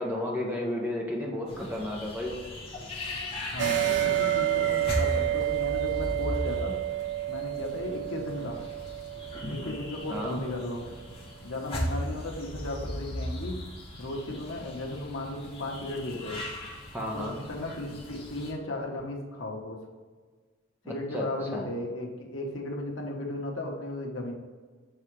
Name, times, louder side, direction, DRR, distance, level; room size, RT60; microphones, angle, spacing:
voice 1, 0.0-2.4 10.1-10.4 16.9-17.4 20.8-21.2 21.5-21.7, left 1 dB, 10° right, -2 dB, 1.1 m, -32 dB
sound 1, 1.5-18.5, left 1 dB, 30° left, 1.4 m, -38 dB
voice 2, 3.5-6.7 7.3-8.6 9.5-10.9 11.4-13.6 14.0-16.4 17.1-19.8 20.9-24.3, left 1 dB, 80° left, 0 dB, 1.2 m, -35 dB
sound 2, 3.6-10.7, right 14 dB, 60° right, 0.3 m, -30 dB
7.1 x 3.8 x 4.7 m, 1.5 s
head